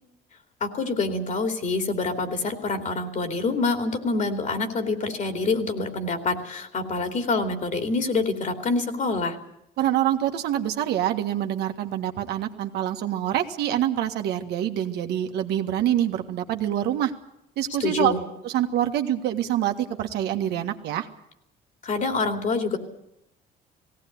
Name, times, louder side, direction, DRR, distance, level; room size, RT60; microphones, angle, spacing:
voice 1, 0.6-9.4 17.8-18.2 21.8-22.8, left 3 dB, 45° left, 7 dB, 2.9 m, -26 dB
voice 2, 9.8-17.1 17.6-18.1 18.4-21.1, right 11 dB, 75° right, 5 dB, 1.7 m, -26 dB
18.5 x 17.0 x 9.5 m, 0.82 s
cardioid pair, 110°, 17 cm